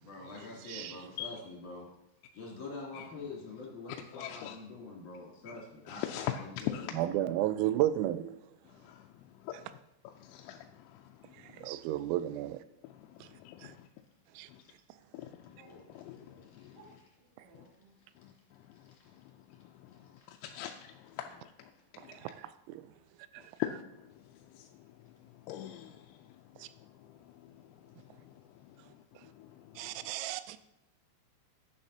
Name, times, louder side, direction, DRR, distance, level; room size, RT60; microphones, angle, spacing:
voice 1, 0.0-1.9 2.3-7.2 13.6-13.7 14.6-14.7 15.9-16.0 16.5-16.7 18.9-19.0 20.2-20.3, left 3 dB, 45° left, 3.6 m, -46 dB
voice 2, 0.6-1.0 6.9-8.4 11.4-12.6 13.2-13.3 13.6-13.7 14.4-14.5 22.0-22.8 23.3-23.4 26.6-26.7 29.8-30.6, right 13 dB, 90° right, 3.3 m, -33 dB
voice 3, 4.1-4.6 5.9-6.3 6.7-6.9 8.8-9.1 9.4-9.5 10.2-10.7 11.5-11.7 13.5-13.9 15.1-15.5 15.9-16.2 16.6-16.7 20.4-21.4 22.0-22.1 23.6-23.7 24.5-24.7 25.5-26.0, left 13 dB, 85° left, 3.3 m, -39 dB
voice 4, 15.6-15.9 16.2-16.4 16.7-16.9 17.4-18.0 21.2-21.3, right 2 dB, 40° right, 3.7 m, -59 dB
11.5 x 9.9 x 2.8 m
omnidirectional pair, 5.9 m